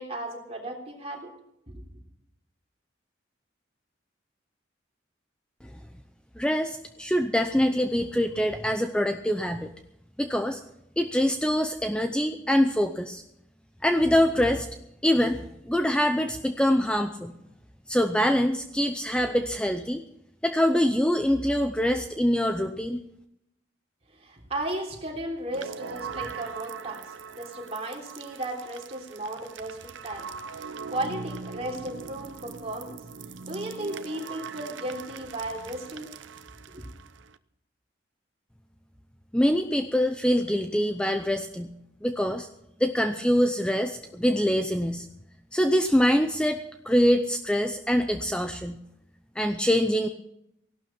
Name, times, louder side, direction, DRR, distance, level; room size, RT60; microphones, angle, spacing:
voice 1, 0.0-1.3 1.7-2.0 24.1-30.3 30.5-33.0 33.5-36.1 36.7-36.9, right 1 dB, 35° right, 0 dB, 3.4 m, -35 dB
voice 2, 6.4-9.7 10.2-10.6 11.0-13.2 13.8-14.7 15.0-17.3 17.9-20.0 20.4-23.0 39.3-41.7 42.0-42.5 42.8-45.1 45.5-48.8 49.4-50.1, equal, 5° left, 6 dB, 0.6 m, -24 dB
sound 1, 25.5-37.4, right 5 dB, 90° right, 0.7 m, -41 dB
16.5 x 12.0 x 6.0 m, 0.80 s
head